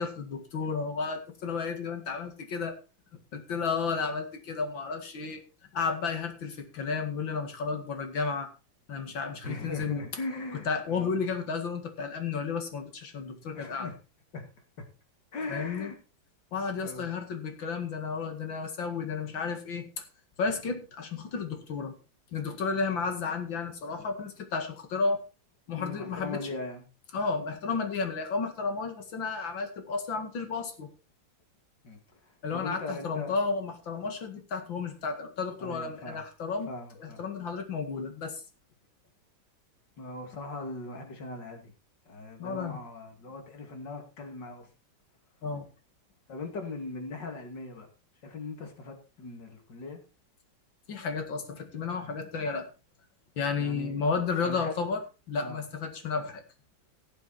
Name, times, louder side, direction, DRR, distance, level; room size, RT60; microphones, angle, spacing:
voice 1, 0.0-2.8 3.3-5.4 5.7-8.5 8.9-10.1 10.5-13.9 15.5-15.9 16.5-20.0 20.4-21.9 22.3-25.2 25.7-26.5 27.1-30.9 32.4-38.4 42.4-42.8 45.4-45.7 50.9-52.7 53.4-55.0 55.3-56.4, left 5 dB, 85° left, 6 dB, 2.8 m, -32 dB
voice 2, 9.4-11.2 13.5-14.0 14.3-14.5 14.8-14.9 15.3-16.0 16.8-17.2 25.7-26.9 31.8-33.3 35.6-36.2 36.7-37.2 40.0-41.7 42.1-44.7 46.3-47.9 48.2-50.0 53.6-54.0 54.4-54.7 55.4-55.6, left 3 dB, 65° left, 4 dB, 3.1 m, -40 dB
17.5 x 7.2 x 4.3 m, 0.32 s
omnidirectional pair, 2.0 m